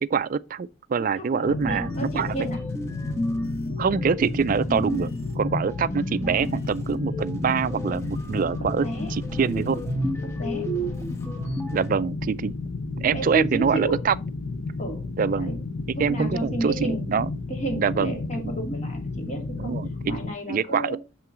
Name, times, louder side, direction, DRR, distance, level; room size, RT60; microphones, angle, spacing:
voice 1, 0.0-2.3 3.8-9.9 11.7-12.5 12.9-14.1 15.2-15.6 15.9-17.3 17.8-18.2 18.4-18.5 19.6-20.2 20.5-21.0, right 6 dB, 40° right, 0.3 m, -25 dB
voice 2, 1.1-2.6 8.6-9.1 10.2-10.6 13.0-14.0 14.8-15.1 15.4-15.6 15.9-17.0 17.5-19.8 20.1-21.0, right 2 dB, 35° left, 2.2 m, -32 dB
sound 1, 1.5-20.3, left 3 dB, 65° left, 0.6 m, -32 dB
sound 2, 1.6-11.9, equal, 15° left, 1.2 m, -33 dB
6.9 x 5.7 x 3.7 m
head